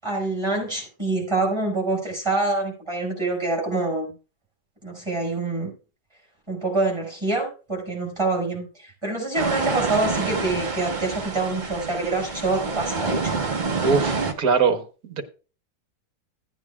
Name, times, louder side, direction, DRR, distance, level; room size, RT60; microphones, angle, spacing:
voice 1, 0.0-4.1 4.8-5.7 6.5-13.4, right 2 dB, 15° right, 0 dB, 5.8 m, -26 dB
sound 1, 9.3-14.3, right 4 dB, 35° right, 0.9 m, -27 dB
voice 2, 13.8-15.2, right 5 dB, 60° right, 5 dB, 1.6 m, -22 dB
16.0 x 9.1 x 2.4 m, 0.34 s
omnidirectional pair, 1.9 m